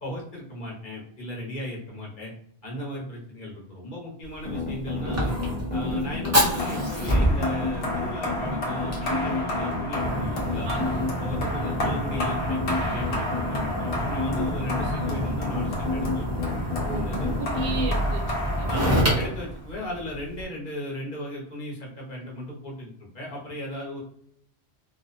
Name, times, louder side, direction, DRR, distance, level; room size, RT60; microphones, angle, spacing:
voice 1, 0.0-2.3 2.6-5.4 5.7-10.7 11.2-16.5 16.9-17.3 18.7-24.0, equal, 50° left, -4 dB, 1.0 m, -36 dB
Fire, 4.2-20.4, equal, 25° right, 0.4 m, -29 dB
sound 1, 4.5-17.9, left 3 dB, 10° left, 0.9 m, -30 dB
sound 2, 6.6-19.6, left 1 dB, 90° left, 1.1 m, -33 dB
voice 2, 10.6-11.1 16.8-18.7, right 4 dB, 80° right, 1 dB, 0.9 m, -36 dB
2.4 x 2.1 x 2.5 m, 0.68 s
omnidirectional pair, 1.1 m